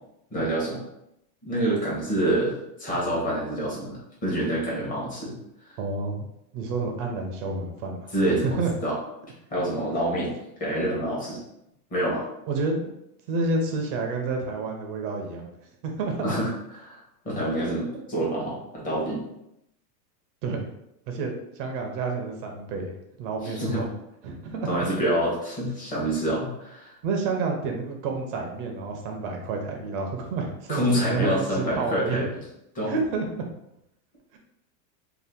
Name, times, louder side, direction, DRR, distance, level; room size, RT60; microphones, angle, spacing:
voice 1, 0.3-0.8 1.4-2.5 2.8-5.3 5.7-5.8 8.1-8.9 9.5-10.3 10.6-11.4 11.9-12.2 16.2-16.5 16.8-19.2 23.4-23.8 24.6-26.9 30.7-32.3 32.7-32.9, right 1 dB, 15° left, -5 dB, 1.0 m, -27 dB
voice 2, 5.8-6.3 6.5-8.7 12.5-12.9 13.3-15.5 15.8-16.3 17.4-18.0 20.4-20.7 21.1-23.9 24.2-24.7 27.0-32.2 32.8-33.4 34.3-34.4, right 3 dB, 35° right, 2 dB, 0.4 m, -30 dB
2.7 x 2.2 x 3.4 m, 0.82 s
supercardioid pair, 145°, 49 cm